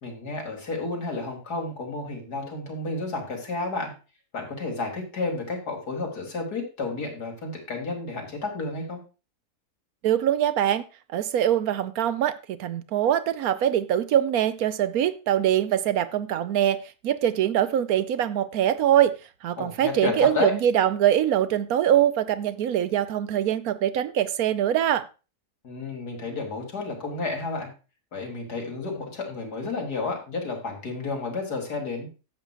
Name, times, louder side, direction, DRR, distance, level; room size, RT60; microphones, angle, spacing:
voice 1, 0.0-3.9 4.3-9.0 19.6-20.5 25.6-27.7 28.1-32.1, left 3 dB, 80° left, 2 dB, 3.0 m, -31 dB
voice 2, 10.0-10.8 11.1-19.1 19.4-25.0, right 10 dB, 75° right, 14 dB, 1.1 m, -23 dB
10.5 x 3.9 x 7.5 m, 0.32 s
omnidirectional pair, 1.6 m